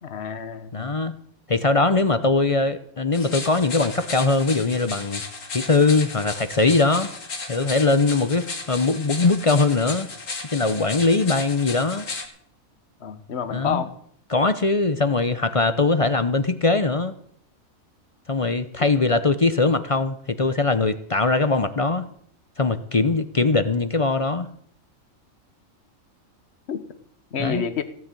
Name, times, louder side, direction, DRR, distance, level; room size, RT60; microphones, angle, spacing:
voice 1, 0.0-0.9 13.0-13.9 18.8-18.9 26.7-26.8 27.3-27.8, left 7 dB, 55° left, 10 dB, 1.3 m, -29 dB
voice 2, 0.7-1.1 1.5-5.2 5.5-7.1 7.5-10.1 10.5-12.1 13.5-13.8 14.3-17.1 18.3-22.1 22.6-24.5 27.4-27.6, left 3 dB, 35° left, 11 dB, 0.6 m, -21 dB
sound 1, 3.1-12.3, left 3 dB, 70° left, 2.3 m, -35 dB
16.0 x 7.3 x 9.0 m, 0.65 s
omnidirectional pair, 1.4 m